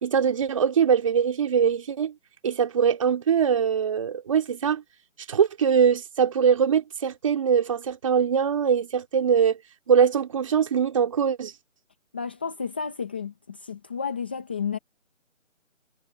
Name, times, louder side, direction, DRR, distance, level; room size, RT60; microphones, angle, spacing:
voice 1, 0.0-2.1 2.4-4.8 5.3-9.6 9.9-11.5, right 7 dB, 25° right, 2.8 m, -22 dB
voice 2, 12.1-14.8, left 6 dB, 10° left, 1.0 m, -32 dB
figure-of-eight pair, 170°, 39 cm